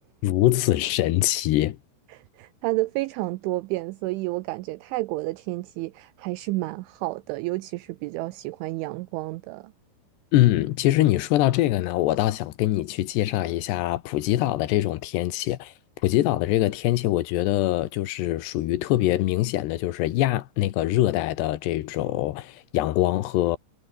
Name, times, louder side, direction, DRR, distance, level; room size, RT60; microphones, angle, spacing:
voice 1, 0.2-1.8 10.3-15.7 16.0-23.6, left 15 dB, 70° left, 2.8 m, -23 dB
voice 2, 2.1-9.7, right 20 dB, 80° right, 2.9 m, -30 dB
omnidirectional pair, 5.9 m